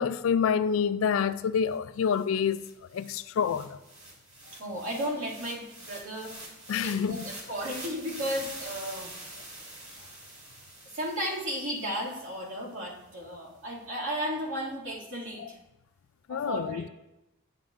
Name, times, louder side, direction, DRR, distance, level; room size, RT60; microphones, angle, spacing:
voice 1, 0.0-2.6 2.9-3.8 6.7-7.3 15.4-15.5 16.3-16.9, left 7 dB, 70° left, 0.3 m, -27 dB
sound 1, 1.7-1.8 2.1-12.4, right 1 dB, 35° right, 2.2 m, -45 dB
voice 2, 4.6-6.3 6.8-9.1 10.9-15.6 16.3-16.8, equal, 70° right, 2.3 m, -34 dB
9.7 x 7.1 x 2.5 m
head